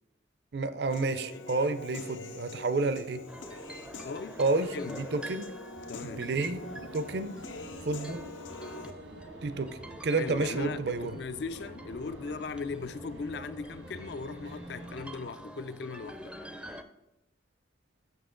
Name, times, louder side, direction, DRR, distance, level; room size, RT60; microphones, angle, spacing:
voice 1, 0.5-3.3 4.4-5.5 6.0-7.4 7.8-8.2 9.4-11.2, right 3 dB, 60° right, 0.5 m, -30 dB
Human voice / Piano, 0.9-8.9, left 2 dB, 85° left, 0.8 m, -44 dB
sound 1, 3.3-16.8, right 1 dB, 5° right, 0.4 m, -48 dB
voice 2, 4.0-4.4 4.7-5.0 5.9-6.3 10.2-16.4, left 4 dB, 60° left, 0.4 m, -38 dB
sound 2, 5.7-15.1, right 1 dB, 90° right, 1.3 m, -49 dB
7.2 x 6.2 x 3.7 m
head